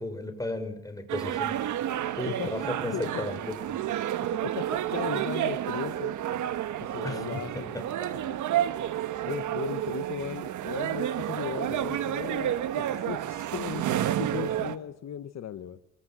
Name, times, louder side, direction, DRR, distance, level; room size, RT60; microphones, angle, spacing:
voice 1, 0.0-1.5 2.2-3.6 6.9-7.8, left 1 dB, 10° left, 7 dB, 5.8 m, -34 dB
sound 1, 1.1-14.8, right 11 dB, 75° right, 1.5 m, -30 dB
voice 2, 2.2-2.6 2.9-3.2 4.3-7.7 8.3-8.4 8.8-8.9 9.2-15.8, left 10 dB, 60° left, 10 dB, 1.4 m, -37 dB
24.0 x 22.5 x 7.7 m, 0.75 s
cardioid pair, 90°, 30 cm